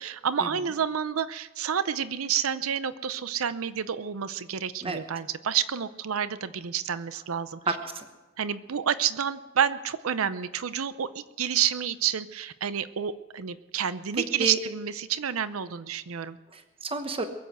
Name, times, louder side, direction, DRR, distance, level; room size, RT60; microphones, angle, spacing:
voice 1, 0.0-7.6 8.4-16.4, right 8 dB, 85° right, 14 dB, 0.6 m, -29 dB
voice 2, 7.7-8.1 14.4-14.6 16.5-17.2, right 3 dB, 25° right, 7 dB, 1.1 m, -31 dB
22.5 x 7.9 x 7.8 m, 1.2 s
head